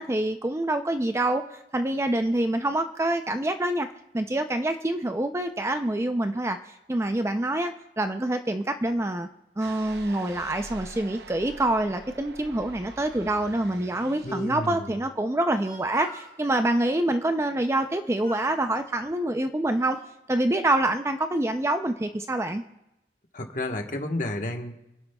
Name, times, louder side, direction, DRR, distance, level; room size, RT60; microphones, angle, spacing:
voice 1, 0.0-3.9 4.1-6.6 6.9-9.3 9.6-20.0 20.3-22.6, right 1 dB, 15° right, 7 dB, 0.4 m, -26 dB
sound 1, 9.6-14.7, right 3 dB, 70° right, 0.8 m, -44 dB
voice 2, 14.2-14.9 23.3-24.8, left 1 dB, 45° left, 3 dB, 1.3 m, -31 dB
Speech, 15.5-16.4 17.7-18.0 18.2-18.6 19.3-20.1, right 2 dB, 50° right, 3.4 m, -45 dB
27.5 x 11.0 x 2.3 m, 0.91 s
head